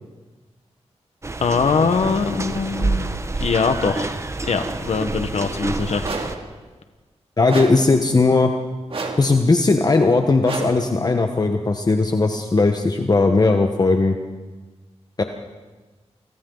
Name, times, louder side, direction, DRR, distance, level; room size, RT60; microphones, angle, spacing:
sound 1, 1.2-6.4, right 3 dB, 25° right, 0.9 m, -28 dB
voice 1, 1.4-3.1 3.4-4.1 4.4-6.0, left 5 dB, 70° left, 7 dB, 1.3 m, -22 dB
sound 2, 6.0-6.5 7.5-8.0 8.9-9.4 10.4-10.9, right 3 dB, 55° right, 2.5 m, -30 dB
voice 2, 7.4-8.5 9.2-14.2 15.2-15.3, left 3 dB, 35° left, 5 dB, 1.2 m, -18 dB
29.5 x 24.0 x 4.0 m, 1.3 s
wide cardioid pair, 115°, 11 cm